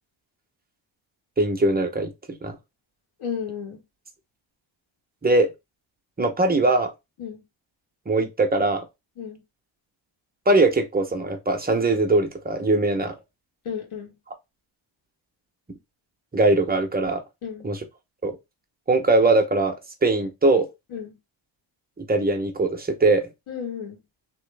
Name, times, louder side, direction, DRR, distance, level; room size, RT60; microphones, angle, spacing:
voice 1, 1.4-2.1 2.4-2.6 5.2-5.5 6.2-6.9 8.1-8.8 10.5-13.2 16.3-17.2 17.6-17.8 18.2-18.4 18.9-19.7 20.0-20.7 22.1-23.3, right 2 dB, 20° right, 0.8 m, -21 dB
voice 2, 3.2-3.8 7.2-7.4 9.2-9.4 13.7-14.2 17.4-17.7 20.9-21.2 23.5-24.0, left 7 dB, 90° left, 1.9 m, -33 dB
3.1 x 3.1 x 3.3 m
wide cardioid pair, 120°, 48 cm